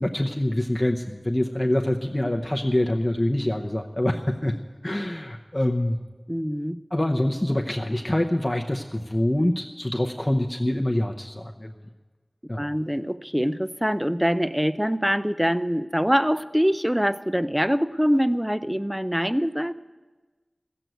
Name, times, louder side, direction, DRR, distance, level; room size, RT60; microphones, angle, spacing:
voice 1, 0.0-4.5 4.8-6.0 6.9-11.7 12.5-12.7, left 1 dB, 25° left, 3 dB, 0.8 m, -25 dB
voice 2, 6.3-6.8 12.6-19.7, equal, 5° right, 14 dB, 0.5 m, -24 dB
15.0 x 7.7 x 9.2 m, 1.3 s
wide cardioid pair, 55°, 0 cm